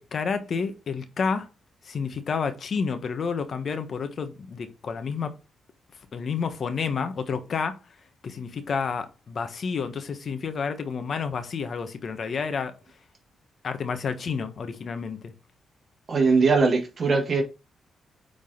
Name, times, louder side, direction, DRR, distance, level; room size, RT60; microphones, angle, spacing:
voice 1, 0.0-1.5 1.8-5.3 6.1-7.8 8.2-12.7 13.6-15.3, left 5 dB, 55° left, 1.3 m, -30 dB
voice 2, 16.1-17.4, right 4 dB, 50° right, 1.8 m, -21 dB
8.8 x 4.0 x 3.9 m
cardioid pair, 80°, 0 cm